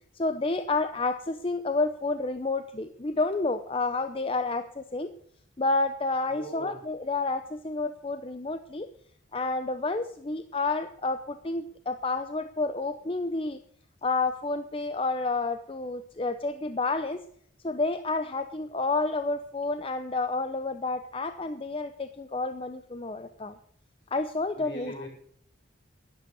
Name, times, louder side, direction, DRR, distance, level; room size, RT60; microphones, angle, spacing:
voice 1, 0.1-5.1 5.6-8.9 9.3-13.6 14.0-17.2 17.6-23.5 24.1-25.1, left 3 dB, 25° left, 9 dB, 0.6 m, -30 dB
voice 2, 6.3-6.8 24.6-25.1, right 1 dB, 55° left, 0 dB, 5.1 m, -40 dB
12.0 x 11.0 x 6.8 m, 0.64 s
head